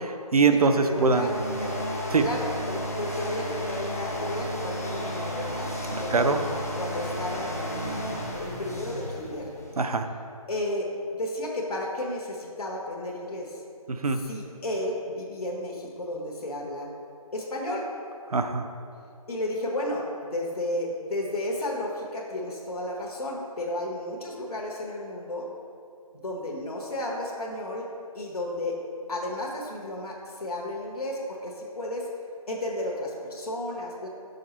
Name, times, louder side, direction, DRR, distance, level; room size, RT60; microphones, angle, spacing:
voice 1, 0.0-1.3 2.1-2.2 6.1-6.4 9.8-10.1 13.9-14.2 18.3-18.7, right 4 dB, 80° right, 7 dB, 0.6 m, -22 dB
voice 2, 0.6-1.8 2.2-7.9 8.3-9.5 10.5-13.6 14.1-16.9 17.3-17.9 19.3-25.5 26.1-27.9 28.1-28.8 29.1-32.1 32.5-34.1, left 1 dB, 80° left, -1 dB, 1.2 m, -33 dB
sound 1, 0.7-9.9, equal, 25° left, 0.5 m, -33 dB
6.5 x 6.4 x 2.9 m, 2.5 s
figure-of-eight pair, 175°, 19 cm